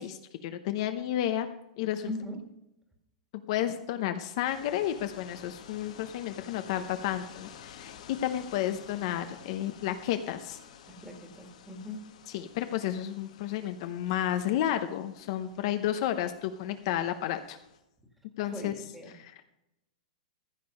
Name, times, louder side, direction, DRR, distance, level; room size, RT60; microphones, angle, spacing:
voice 1, 0.0-1.5 1.8-2.1 3.5-10.6 12.3-17.6 18.4-18.7 19.1-19.6, left 11 dB, 45° left, 8 dB, 0.8 m, -32 dB
voice 2, 2.1-2.5 10.9-12.0 18.5-19.1, left 1 dB, 5° right, 3 dB, 1.8 m, -40 dB
sound 1, 4.4-17.8, left 8 dB, 75° left, 1.7 m, -51 dB
15.0 x 6.8 x 5.4 m, 0.86 s
supercardioid pair, 165°, 4 cm